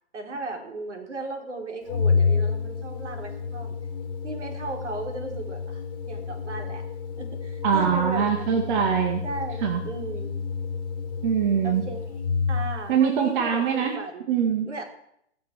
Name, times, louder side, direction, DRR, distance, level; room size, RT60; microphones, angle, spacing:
voice 1, 0.1-3.7 4.2-6.8 7.2-8.7 9.2-10.4 11.6-12.2 12.5-14.3 14.6-14.8, right 2 dB, 75° right, 3 dB, 4.5 m, -36 dB
Organ, 1.9-12.9, left 5 dB, 30° left, 1.9 m, -29 dB
voice 2, 7.6-9.2 9.6-9.8 11.2-11.9 12.9-13.9 14.3-14.7, right 7 dB, 45° right, 3 dB, 2.1 m, -23 dB
18.5 x 6.9 x 9.3 m, 0.74 s
hypercardioid pair, 145°, 36 cm